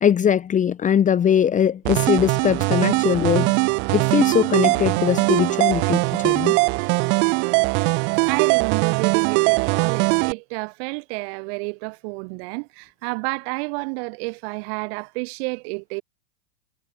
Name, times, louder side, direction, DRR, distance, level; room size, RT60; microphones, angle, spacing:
voice 1, 0.0-3.6 3.9-6.6, left 8 dB, 20° left, 1.1 m, -21 dB
sound 1, 1.8-10.3, right 30 dB, 35° right, 0.4 m, -20 dB
voice 2, 8.2-16.0, right 33 dB, 55° right, 7.6 m, -30 dB
hypercardioid pair, 100°, 35 cm